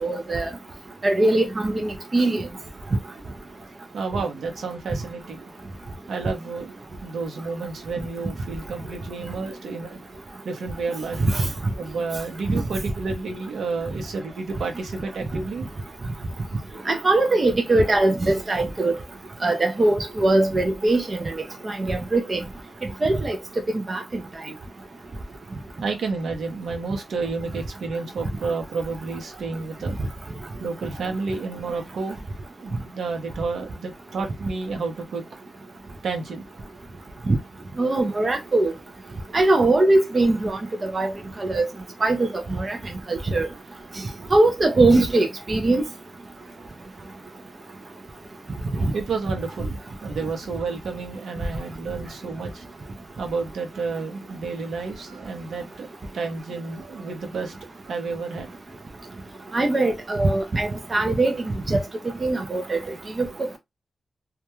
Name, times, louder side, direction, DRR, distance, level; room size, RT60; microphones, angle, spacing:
voice 1, 0.0-0.5 1.0-2.5 11.2-11.5 12.5-12.6 16.9-18.9 19.4-21.4 21.6-22.4 23.0-23.4 23.9-24.0 37.3-37.4 37.8-38.7 39.3-41.1 41.4-41.7 42.0-42.8 43.1-43.5 44.3-45.8 59.5-61.4 61.7-61.8 62.2-62.8 63.2-63.3, right 2 dB, 30° right, 0.4 m, -21 dB
voice 2, 3.9-5.5 6.1-6.7 7.0-10.0 10.4-11.5 11.8-15.6 25.8-30.0 30.6-32.2 32.6-35.2 36.0-36.5 48.9-52.6 53.2-55.9 56.1-57.5 57.9-58.5, right 4 dB, 75° right, 0.7 m, -30 dB
2.3 x 2.1 x 2.9 m
wide cardioid pair, 165°, 0 cm